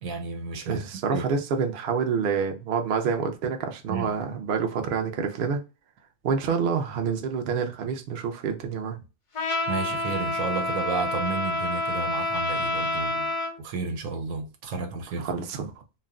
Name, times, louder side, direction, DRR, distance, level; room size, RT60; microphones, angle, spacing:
voice 1, 0.0-1.2 3.9-4.1 9.7-15.4, right 4 dB, 85° right, 1.1 m, -32 dB
voice 2, 0.7-5.6 6.2-9.0 15.2-15.7, right 6 dB, 60° right, 0.6 m, -27 dB
Trumpet, 9.3-13.6, left 2 dB, 55° left, 0.3 m, -28 dB
2.5 x 2.1 x 3.5 m
omnidirectional pair, 1.4 m